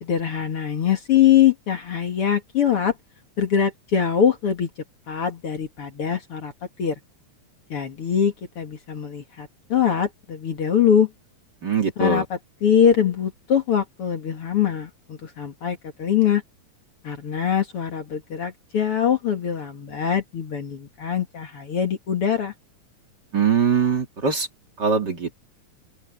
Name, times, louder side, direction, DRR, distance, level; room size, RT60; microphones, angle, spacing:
voice 1, 0.0-2.9 3.4-4.7 5.1-6.5 6.8-6.9 7.7-11.1 12.0-12.2 12.6-16.4 17.0-22.5, left 8 dB, 50° left, 2.6 m, -22 dB
voice 2, 11.6-12.2 23.3-24.5 24.8-25.3, right 5 dB, 35° right, 3.1 m, -21 dB
open air
omnidirectional pair, 3.4 m